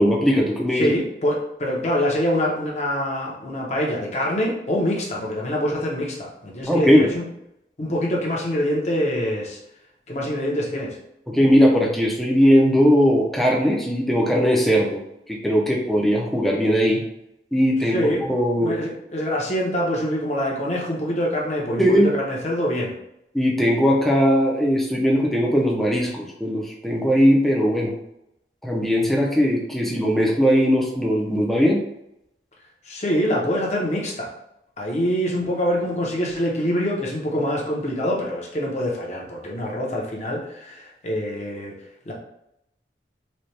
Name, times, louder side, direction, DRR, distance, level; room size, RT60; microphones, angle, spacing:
voice 1, 0.0-1.0 6.7-7.1 11.3-15.0 15.3-17.0 17.5-18.7 21.8-22.1 23.3-27.9 28.6-31.8, equal, ahead, -2 dB, 0.6 m, -19 dB
voice 2, 0.7-7.3 7.8-9.6 10.1-11.0 17.9-18.3 18.5-22.9 32.8-34.3 34.8-41.8 42.0-42.1, equal, 40° left, -3 dB, 0.8 m, -25 dB
4.2 x 2.3 x 3.2 m, 0.81 s
head